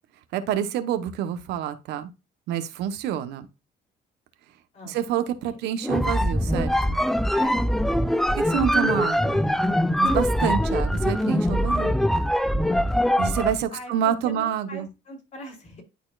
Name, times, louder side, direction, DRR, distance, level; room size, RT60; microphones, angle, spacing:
voice 1, 0.3-2.1 2.5-3.5 4.8-7.0 8.3-9.4 10.0-12.0 13.2-14.9, right 10 dB, 85° right, 0.9 m, -27 dB
sound 1, 5.8-13.6, equal, ahead, 0.4 m, -23 dB
voice 2, 7.3-7.7 13.7-15.8, left 1 dB, 45° left, 3.1 m, -41 dB
11.0 x 4.2 x 2.4 m
cardioid pair, 110°, 17 cm